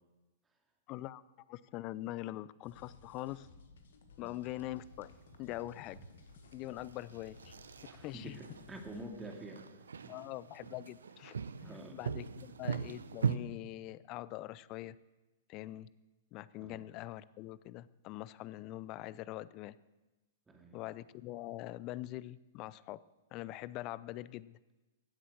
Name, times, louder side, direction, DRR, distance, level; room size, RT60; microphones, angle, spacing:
voice 1, 0.9-1.2 1.5-3.5 4.2-5.1 5.4-6.0 6.5-7.5 8.0-8.4 10.1-15.0 15.5-15.9 16.3-19.7 20.7-23.0 23.3-24.6, left 16 dB, 40° left, 19 dB, 0.5 m, -43 dB
sound 1, 2.6-9.1, left 5 dB, 70° left, 1.5 m, -58 dB
sound 2, 4.4-13.4, right 6 dB, 75° right, 0.6 m, -42 dB
voice 2, 7.8-9.7 10.0-10.1 11.6-12.0 16.6-16.8 20.5-20.8, right 1 dB, 15° right, 2 dB, 2.2 m, -47 dB
16.0 x 8.3 x 6.2 m, 1.1 s
figure-of-eight pair, 105°, 0 cm